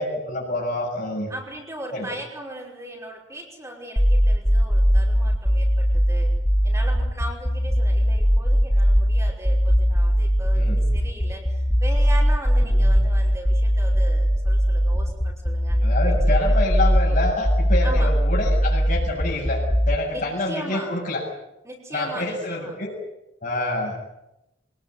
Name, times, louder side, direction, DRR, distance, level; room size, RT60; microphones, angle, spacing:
voice 1, 0.0-1.3 1.9-2.1 10.5-10.8 12.6-12.8 15.8-19.6 19.9-21.2 21.9-22.9 23.4-24.0, left 2 dB, 45° left, -3 dB, 7.6 m, -27 dB
voice 2, 1.3-6.3 6.6-16.4 17.8-18.1 20.1-21.0 21.6-22.8, right 1 dB, 15° right, -3 dB, 5.6 m, -38 dB
sound 1, 4.0-20.0, equal, 20° left, 2.3 m, -19 dB
25.5 x 20.0 x 9.4 m, 0.87 s
head